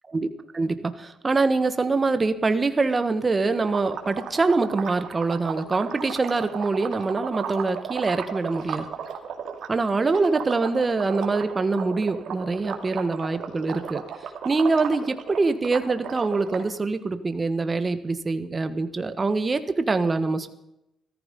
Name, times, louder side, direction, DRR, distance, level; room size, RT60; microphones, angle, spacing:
voice 1, 0.5-8.8 9.7-14.0 14.4-20.5, right 3 dB, 30° right, 10 dB, 1.4 m, -24 dB
sound 1, 3.7-9.7 10.0-16.6, right 7 dB, 70° right, 2.5 m, -34 dB
14.5 x 14.0 x 5.3 m, 0.86 s
cardioid pair, 90°, 0 cm